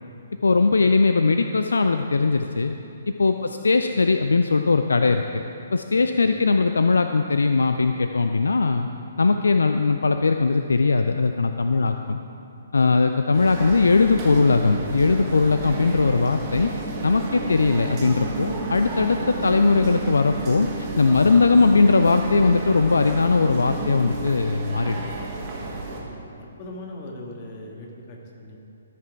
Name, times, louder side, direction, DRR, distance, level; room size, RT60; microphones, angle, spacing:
voice 1, 0.4-2.7 3.2-5.4 5.7-8.9 9.2-12.2 12.7-16.7 17.0-20.7 21.0-25.0, left 4 dB, 70° left, 7 dB, 0.3 m, -20 dB
voice 2, 11.7-12.1 12.8-13.1 25.9-26.3 26.6-28.6, left 1 dB, 35° left, 0 dB, 1.6 m, -41 dB
sound 1, 13.3-26.0, right 3 dB, 25° right, 1.6 m, -31 dB
14.0 x 5.9 x 4.7 m, 2.8 s
figure-of-eight pair, 130°, 0 cm